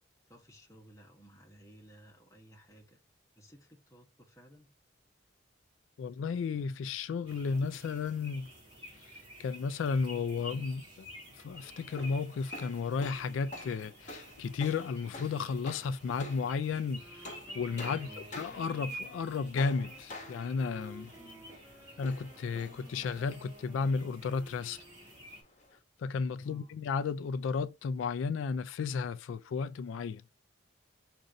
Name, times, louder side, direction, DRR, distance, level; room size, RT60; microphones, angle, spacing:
voice 1, 0.3-3.0 3.4-4.7 18.0-18.3 21.1-21.5 26.4-26.8, right 1 dB, 15° left, 1.1 m, -56 dB
voice 2, 6.0-8.5 9.0-11.1 11.3-18.1 18.4-21.1 22.0-24.8 26.0-30.2, left 5 dB, 85° left, 0.3 m, -33 dB
sound 1, 7.3-25.4, equal, 25° right, 2.0 m, -50 dB
sound 2, 11.5-25.8, left 2 dB, 40° left, 1.0 m, -49 dB
Wind instrument woodwind instrument, 16.9-25.2, equal, 10° right, 0.6 m, -55 dB
5.2 x 2.6 x 3.9 m
head